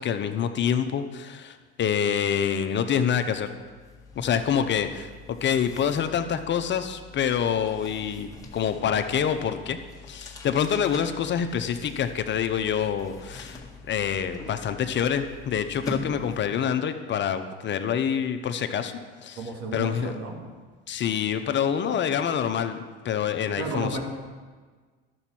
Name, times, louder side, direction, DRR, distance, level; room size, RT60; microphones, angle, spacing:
voice 1, 0.0-3.5 4.2-9.8 10.1-13.6 13.9-18.9 19.2-19.4 19.7-20.1 20.9-22.8 23.0-24.0, left 8 dB, 40° left, 8 dB, 0.7 m, -26 dB
sound 1, 2.7-2.9 3.2-16.6, left 3 dB, 10° left, 1.6 m, -43 dB
voice 2, 19.4-20.4 23.6-24.0, right 2 dB, 60° right, 1 dB, 2.2 m, -32 dB
12.0 x 7.0 x 4.4 m, 1.5 s
supercardioid pair, 85°, 29 cm